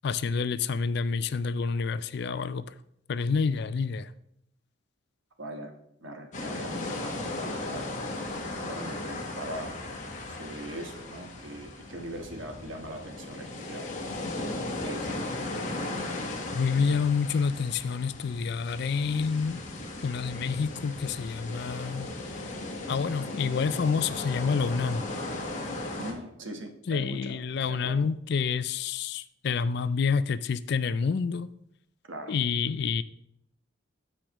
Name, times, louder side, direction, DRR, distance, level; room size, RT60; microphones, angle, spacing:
voice 1, 0.0-2.6 3.1-4.1 16.5-19.6 20.0-22.1 22.9-25.1 25.7-25.8 26.9-31.5 32.3-33.0, left 5 dB, 55° left, 0.4 m, -28 dB
voice 2, 5.4-5.7 6.0-7.8 8.6-9.7 10.3-13.8 14.8-15.3 26.0-27.4 27.7-28.1 32.1-32.3, right 1 dB, 70° right, 1.2 m, -40 dB
sound 1, 6.3-26.1, left 2 dB, 35° left, 1.3 m, -37 dB
15.0 x 5.0 x 3.0 m
head